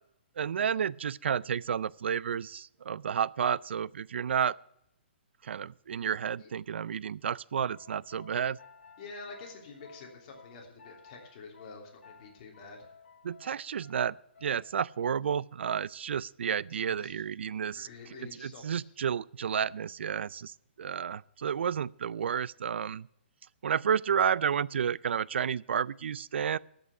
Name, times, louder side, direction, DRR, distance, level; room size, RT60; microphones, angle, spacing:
voice 1, 0.4-4.6 5.4-8.6 13.2-17.9 18.2-23.1 23.6-26.6, right 8 dB, 75° right, 0.4 m, -31 dB
sound 1, 7.7-15.0, left 5 dB, 90° left, 1.1 m, -56 dB
voice 2, 9.0-12.9 16.8-17.1 17.7-18.9, left 4 dB, 35° left, 3.1 m, -48 dB
13.5 x 6.2 x 7.9 m
hypercardioid pair, 155°, 6 cm